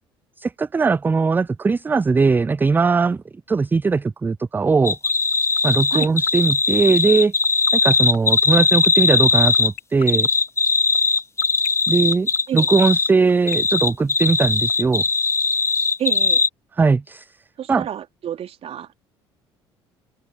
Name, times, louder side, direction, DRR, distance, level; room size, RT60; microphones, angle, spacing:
voice 1, 0.4-5.0 5.6-7.3 7.7-10.3 11.9-15.0 16.7-17.3 17.7-17.9, right 4 dB, 15° right, 0.3 m, -19 dB
sound 1, 4.8-9.7 10.1-13.1 13.5-16.5, left 4 dB, 20° left, 1.3 m, -19 dB
sound 2, 5.1-14.7, left 21 dB, 60° left, 1.7 m, -35 dB
voice 2, 16.0-16.4 17.6-19.0, right 10 dB, 45° right, 2.9 m, -29 dB
figure-of-eight pair, 55°, 14 cm